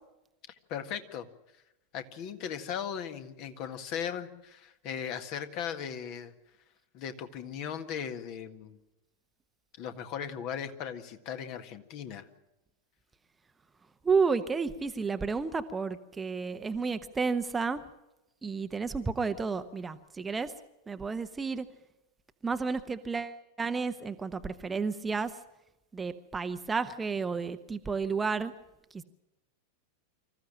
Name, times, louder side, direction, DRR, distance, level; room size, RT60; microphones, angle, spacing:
voice 1, 0.7-1.3 1.9-6.3 6.9-8.8 9.8-12.3, left 8 dB, 40° left, 8 dB, 1.8 m, -37 dB
voice 2, 14.0-17.8 18.4-20.5 20.9-21.7 22.4-25.4 25.9-28.5 28.9-29.0, right 5 dB, 15° right, 10 dB, 1.0 m, -31 dB
25.5 x 14.5 x 8.8 m, 0.94 s
figure-of-eight pair, 90°, 0 cm